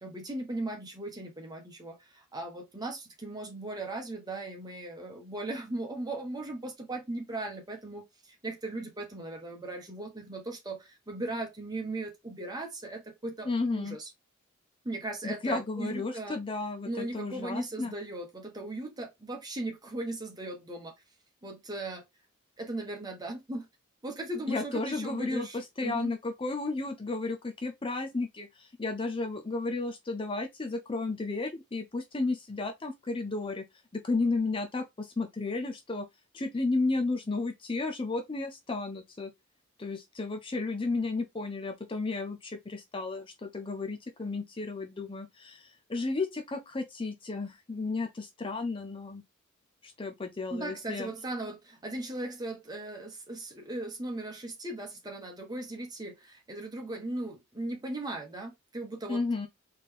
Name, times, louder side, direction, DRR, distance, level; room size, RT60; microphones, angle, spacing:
voice 1, 0.0-14.1 14.8-16.4 16.8-20.9 21.4-22.0 22.6-23.7 24.0-26.1 50.5-59.2, right 2 dB, 20° right, 1.4 m, -38 dB
voice 2, 13.5-14.0 15.2-17.9 24.5-33.6 33.9-36.1 36.3-39.3 39.8-49.2 49.8-51.1 59.1-59.5, left 3 dB, 25° left, 0.5 m, -33 dB
4.2 x 3.3 x 3.6 m
head